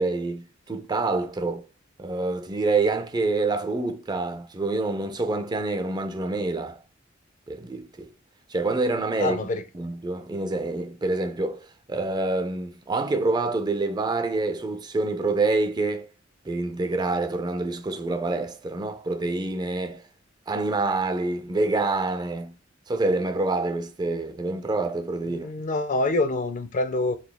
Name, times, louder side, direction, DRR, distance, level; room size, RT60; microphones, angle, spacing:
voice 1, 0.0-1.6 2.0-6.8 7.5-8.1 8.5-9.4 9.7-16.1 16.5-20.0 20.5-22.5 22.9-25.5, right 3 dB, 20° right, 0.4 m, -27 dB
voice 2, 9.2-9.6 25.3-27.2, left 2 dB, 40° left, 0.4 m, -26 dB
4.0 x 3.4 x 2.2 m
head